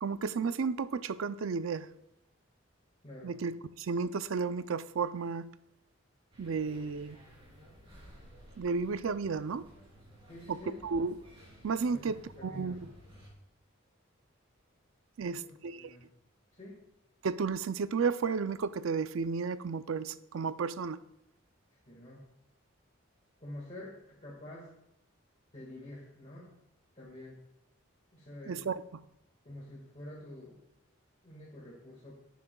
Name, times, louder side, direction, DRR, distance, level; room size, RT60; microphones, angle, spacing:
voice 1, 0.0-1.9 3.2-5.5 6.4-7.2 8.6-9.7 10.5-11.2 11.6-12.9 15.2-15.9 17.2-21.0 28.5-28.8, right 5 dB, 75° right, 0.4 m, -33 dB
voice 2, 3.0-3.4 10.3-10.9 11.9-12.1 12.4-12.8 15.2-16.0 16.5-16.8 21.9-22.3 23.4-24.7 25.5-26.5 27.0-27.4 28.1-28.7 29.4-30.6 31.2-32.1, left 1 dB, 35° left, 1.8 m, -47 dB
sound 1, 6.3-13.3, equal, 25° right, 3.5 m, -55 dB
19.0 x 7.2 x 2.3 m
head